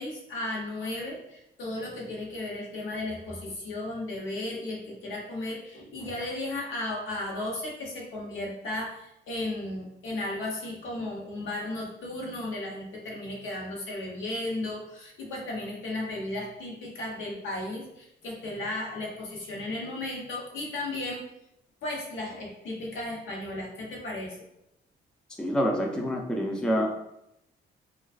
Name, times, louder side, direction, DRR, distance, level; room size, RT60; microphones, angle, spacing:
voice 1, 0.0-21.2 21.8-24.4, left 2 dB, 80° left, -2 dB, 0.8 m, -35 dB
voice 2, 25.4-26.9, equal, 5° left, 1 dB, 0.4 m, -27 dB
2.4 x 2.3 x 2.3 m, 0.82 s
cardioid pair, 90°, 20 cm